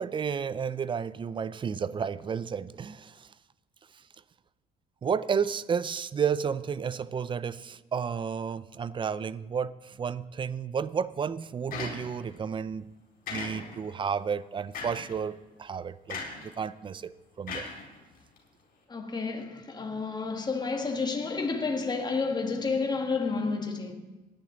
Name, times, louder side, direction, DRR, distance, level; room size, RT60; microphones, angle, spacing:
voice 1, 0.0-3.3 5.0-12.9 13.3-17.1 17.4-17.7, right 6 dB, 30° right, 0.4 m, -32 dB
sound 1, 11.7-12.4 13.3-13.9 14.7-15.2 16.1-16.5 17.5-18.4, left 4 dB, 55° left, 4.3 m, -38 dB
voice 2, 18.9-23.9, left 4 dB, 25° left, 1.9 m, -30 dB
17.5 x 10.5 x 3.9 m
cardioid pair, 110°, 17 cm